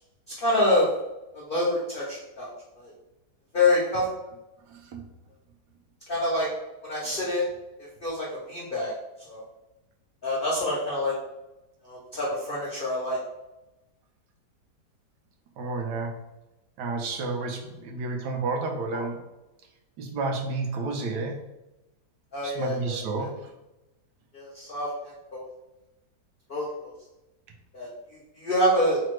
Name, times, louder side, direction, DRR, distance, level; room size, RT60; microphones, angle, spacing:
voice 1, 0.4-0.9 1.3-2.9 3.5-4.1 6.1-6.5 6.8-7.5 8.0-8.9 9.3-9.4 10.2-11.1 11.8-13.2 18.9-19.0 22.3-23.3 24.3-25.5 26.5-26.9 27.7-29.0, left 1 dB, 80° left, -5 dB, 0.4 m, -27 dB
voice 2, 4.7-5.1 15.6-16.1 16.8-19.2 20.0-21.4 22.4-23.3, right 3 dB, 80° right, 1 dB, 1.2 m, -30 dB
3.2 x 2.0 x 3.0 m, 0.98 s
omnidirectional pair, 1.8 m